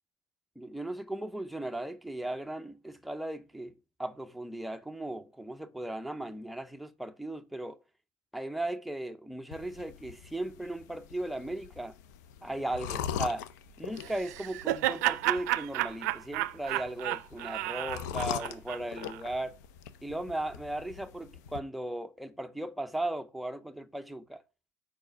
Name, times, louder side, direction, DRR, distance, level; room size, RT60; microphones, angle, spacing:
voice 1, 0.6-3.7 4.0-7.8 8.3-12.0 12.4-13.5 13.8-19.6 20.0-24.4, right 1 dB, ahead, 0.4 m, -37 dB
sound 1, 9.5-21.6, left 9 dB, 85° left, 0.6 m, -42 dB
Laughter, 14.0-19.2, right 17 dB, 85° right, 0.4 m, -32 dB
4.8 x 4.8 x 6.0 m
supercardioid pair, 135°, 9 cm